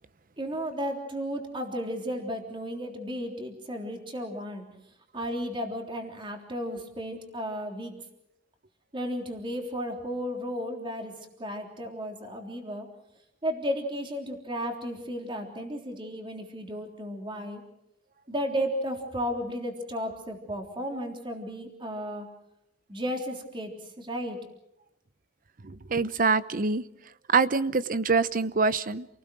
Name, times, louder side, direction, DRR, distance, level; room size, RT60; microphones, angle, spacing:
voice 1, 0.4-4.7 5.1-7.9 8.9-11.1 11.4-12.9 13.4-17.6 18.3-22.3 22.9-24.4, equal, 30° right, 3 dB, 3.5 m, -34 dB
voice 2, 25.6-26.8 27.3-29.1, right 4 dB, 50° right, 15 dB, 0.8 m, -25 dB
29.0 x 19.0 x 6.3 m, 0.82 s
head